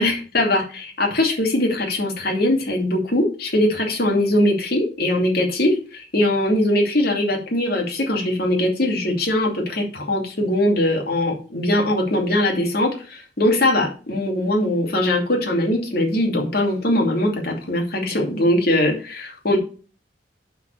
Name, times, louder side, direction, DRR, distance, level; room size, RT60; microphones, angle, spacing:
voice 1, 0.0-19.6, left 1 dB, 60° left, 0 dB, 2.7 m, -21 dB
6.3 x 5.5 x 6.8 m, 0.37 s
head